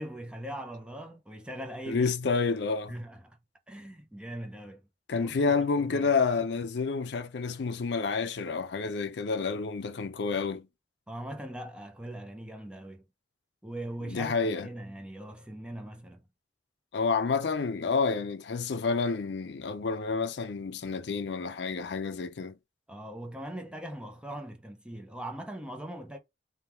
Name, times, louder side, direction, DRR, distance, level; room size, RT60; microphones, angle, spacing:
voice 1, 0.0-2.1 2.9-3.4 3.7-4.9 5.2-6.1 11.1-13.0 13.6-16.3 22.9-26.2, right 1 dB, 5° right, 0.6 m, -41 dB
voice 2, 1.9-2.9 5.1-10.7 14.1-14.7 16.9-22.5, left 4 dB, 70° left, 0.5 m, -29 dB
3.5 x 2.3 x 4.3 m
head